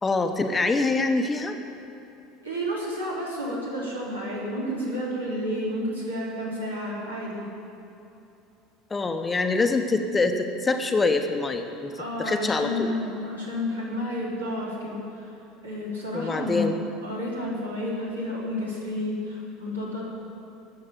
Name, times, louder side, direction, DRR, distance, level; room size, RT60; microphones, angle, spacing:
voice 1, 0.0-1.6 8.9-12.9 16.1-16.8, left 3 dB, 20° left, 6 dB, 1.0 m, -25 dB
voice 2, 2.4-7.5 12.0-15.3 15.6-16.7 17.0-20.0, left 1 dB, 80° right, -6 dB, 3.5 m, -31 dB
13.0 x 7.7 x 9.0 m, 2.8 s
figure-of-eight pair, 70°, 0 cm